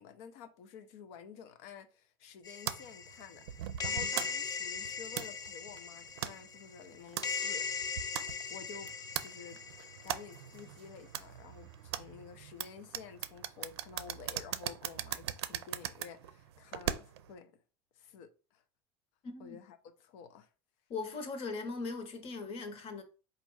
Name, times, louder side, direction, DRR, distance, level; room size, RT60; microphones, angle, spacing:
voice 1, 0.0-7.7 8.0-8.1 8.5-8.9 9.2-9.6 10.0-17.5 17.9-18.6 19.4-20.5, left 6 dB, 70° left, 0.8 m, -51 dB
sound 1, 2.4-10.6, left 6 dB, 30° left, 0.5 m, -39 dB
sound 2, 2.7-17.3, right 11 dB, 90° right, 0.4 m, -41 dB
voice 2, 19.2-19.6 20.9-23.0, left 4 dB, 45° left, 1.3 m, -39 dB
4.2 x 2.6 x 4.7 m
supercardioid pair, 95°, 13 cm